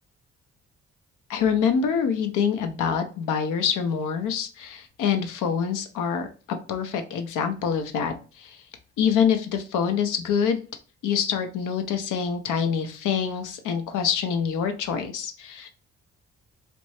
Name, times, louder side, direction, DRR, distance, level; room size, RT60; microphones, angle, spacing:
voice 1, 1.3-6.3 6.7-8.6 9.0-10.6 11.0-15.7, left 7 dB, 90° left, 7 dB, 0.6 m, -25 dB
3.1 x 2.6 x 3.1 m, 0.35 s
cardioid pair, 70°, 30 cm